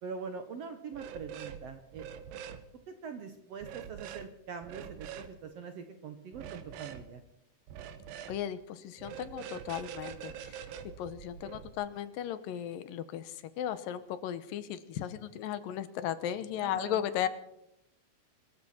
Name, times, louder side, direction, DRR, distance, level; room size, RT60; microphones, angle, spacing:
voice 1, 0.0-2.1 2.9-7.2 16.6-17.0, right 5 dB, 70° right, 7 dB, 1.6 m, -43 dB
sound 1, 0.9-1.6 1.9-2.6 3.6-4.3 4.6-5.3 6.3-7.0 7.7-8.4 9.0-11.7, right 8 dB, 85° right, 2.7 m, -44 dB
voice 2, 8.3-10.6 11.0-17.3, left 10 dB, 85° left, 13 dB, 2.6 m, -36 dB
24.5 x 13.5 x 4.3 m, 0.80 s
omnidirectional pair, 4.0 m